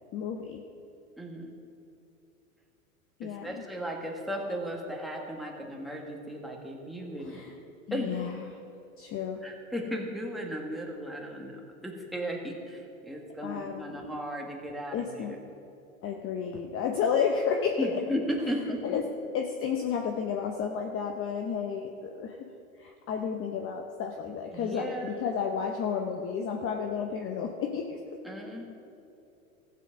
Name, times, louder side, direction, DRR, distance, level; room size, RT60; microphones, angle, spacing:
voice 1, 0.1-0.6 3.2-3.6 7.2-7.5 7.9-8.5 9.0-9.5 13.4-14.1 14.9-15.4 16.0-18.0 18.8-19.1 19.3-22.5 22.8-28.2, left 6 dB, 30° left, 3 dB, 0.9 m, -32 dB
voice 2, 1.2-1.6 3.2-7.4 7.9-8.2 9.4-15.4 17.8-19.0 24.5-25.2 28.2-28.6, equal, ahead, -1 dB, 2.0 m, -35 dB
14.5 x 7.9 x 6.0 m, 2.8 s
hypercardioid pair, 105°, 42 cm